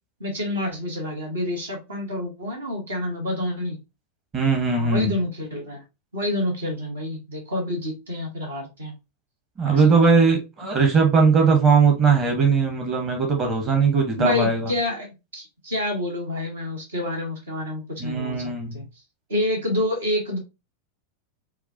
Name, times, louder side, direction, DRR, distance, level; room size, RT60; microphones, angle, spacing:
voice 1, 0.2-3.8 4.7-5.8 6.1-8.9 9.6-10.0 14.2-15.1 15.3-18.8 19.3-20.4, left 1 dB, 70° right, 1.3 m, -28 dB
voice 2, 4.3-5.1 9.6-14.7 18.0-18.8, right 5 dB, 25° right, 1.0 m, -19 dB
4.6 x 2.2 x 2.6 m
figure-of-eight pair, 90°, 0 cm